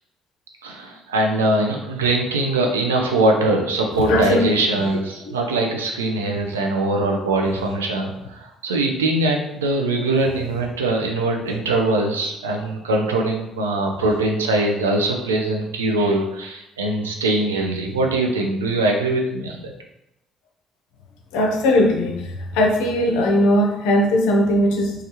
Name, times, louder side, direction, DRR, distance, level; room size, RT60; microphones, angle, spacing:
voice 1, 0.6-19.7, right 2 dB, 75° right, 2 dB, 0.4 m, -22 dB
voice 2, 4.1-4.5 21.3-22.2 22.5-24.9, left 1 dB, 65° left, 2 dB, 0.5 m, -18 dB
3.2 x 2.3 x 2.9 m, 0.87 s
figure-of-eight pair, 45°, 0 cm